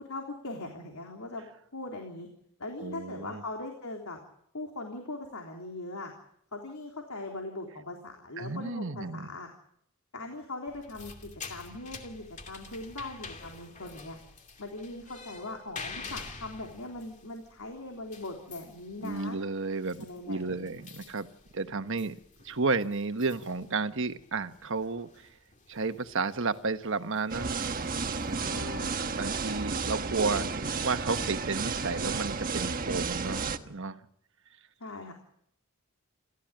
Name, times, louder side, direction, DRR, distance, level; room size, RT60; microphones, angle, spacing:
voice 1, 0.0-1.4 1.7-2.3 2.6-4.2 4.5-6.1 6.5-9.5 10.1-14.2 14.6-19.4 20.0-20.8 28.4-29.0 34.8-35.1, left 2 dB, 90° left, 2 dB, 3.7 m, -40 dB
voice 2, 2.8-3.4 8.4-9.3 19.0-20.0 20.3-21.3 21.5-22.2 22.4-25.4 25.7-27.9 28.2-28.4 29.0-34.1, right 3 dB, 60° right, 9 dB, 1.3 m, -32 dB
sound 1, 10.7-28.8, left 4 dB, 35° left, 2.5 m, -48 dB
sound 2, 27.3-33.6, right 4 dB, 40° right, 1.3 m, -32 dB
29.0 x 14.0 x 8.9 m, 0.71 s
head